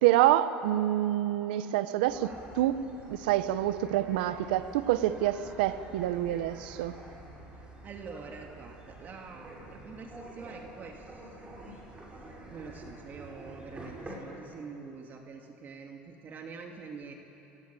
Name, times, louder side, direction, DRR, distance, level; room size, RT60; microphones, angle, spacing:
voice 1, 0.0-2.3 2.5-6.9, right 13 dB, 85° right, 12 dB, 1.1 m, -27 dB
sound 1, 2.1-14.1, right 2 dB, 20° right, 7.8 m, -47 dB
voice 2, 7.5-11.3 11.7-11.8 12.2-17.1, right 5 dB, 40° right, 2 dB, 2.7 m, -46 dB
29.0 x 19.5 x 8.6 m, 2.9 s
supercardioid pair, 105°, 5 cm